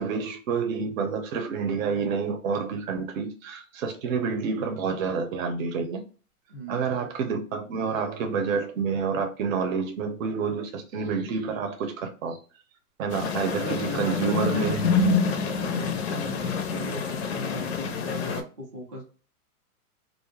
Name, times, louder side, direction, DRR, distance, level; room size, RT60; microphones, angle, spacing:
voice 1, 0.0-6.0 6.7-12.4 13.0-15.0, right 5 dB, 60° right, 0.7 m, -28 dB
voice 2, 6.5-7.0 13.6-19.1, left 1 dB, 25° right, 0.3 m, -38 dB
sound 1, 13.1-18.4, left 4 dB, 45° left, 0.4 m, -27 dB
2.5 x 2.1 x 3.0 m
hypercardioid pair, 155°, 46 cm